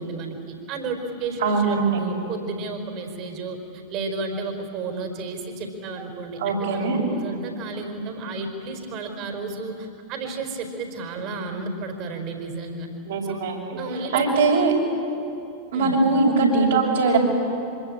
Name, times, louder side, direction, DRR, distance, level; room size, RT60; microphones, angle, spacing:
voice 1, 0.0-12.9 13.3-13.4 13.8-14.5 15.7-16.0, right 3 dB, 40° right, 5 dB, 4.7 m, -32 dB
voice 2, 1.4-2.0 6.4-7.0 13.0-13.8 14.1-14.7 15.7-17.2, right 4 dB, 60° right, 0 dB, 6.4 m, -21 dB
26.0 x 25.5 x 8.8 m, 2.7 s
figure-of-eight pair, 90°, 0 cm